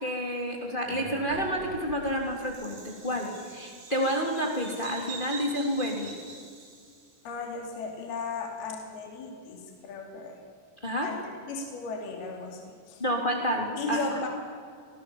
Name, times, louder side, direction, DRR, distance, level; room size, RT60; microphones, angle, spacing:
voice 1, 0.0-6.1 10.8-11.1 13.0-14.2, equal, 15° left, 0 dB, 2.7 m, -29 dB
Bird vocalization bird call bird song, 0.9-7.1, right 4 dB, 90° right, 6.6 m, -44 dB
voice 2, 7.2-10.4 11.0-11.2 11.5-13.0 13.8-14.3, left 4 dB, 65° left, 2 dB, 4.6 m, -36 dB
28.0 x 19.0 x 7.3 m, 2.2 s
omnidirectional pair, 5.1 m